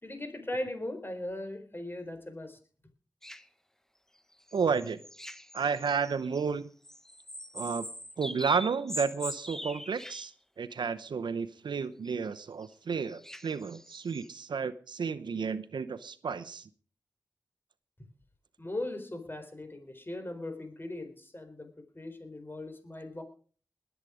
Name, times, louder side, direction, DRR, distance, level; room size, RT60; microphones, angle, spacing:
voice 1, 0.0-2.6 18.6-21.7 21.9-23.2, left 1 dB, 30° left, 8 dB, 4.0 m, -39 dB
sound 1, 3.2-3.4 4.3-6.5 6.8-10.3 12.1-12.2 12.6-12.7 12.9-14.3, equal, 5° left, 1.0 m, -43 dB
voice 2, 4.5-5.0 5.5-6.7 7.5-7.9 8.2-10.3 10.6-16.7, right 5 dB, 80° right, 12 dB, 0.8 m, -32 dB
20.5 x 8.2 x 5.0 m, 0.43 s
cardioid pair, 40°, 8 cm